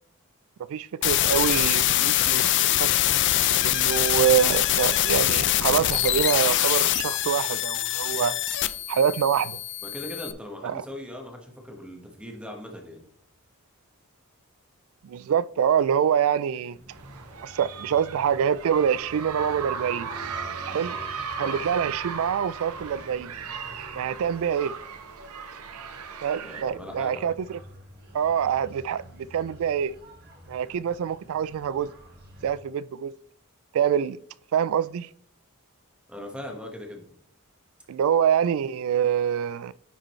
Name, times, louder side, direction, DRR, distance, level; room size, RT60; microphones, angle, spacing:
voice 1, 0.7-2.9 3.6-8.4 8.9-9.6 10.6-10.8 15.0-16.8 17.4-20.1 20.7-21.0 21.4-23.3 23.9-24.7 26.2-27.6 28.1-29.9 30.5-31.9 32.4-33.1 33.7-34.2 34.5-35.1 37.9-39.7, right 8 dB, 65° right, 0.3 m, -25 dB
sound 1, 1.0-10.3, left 13 dB, 55° left, 0.4 m, -24 dB
voice 2, 9.8-13.0 21.4-21.6 26.4-27.3 36.1-37.0, left 1 dB, 5° right, 1.3 m, -39 dB
sound 2, 16.7-32.6, equal, 45° right, 1.4 m, -48 dB
sound 3, 16.9-26.6, right 6 dB, 80° right, 0.8 m, -37 dB
10.0 x 5.0 x 3.1 m
head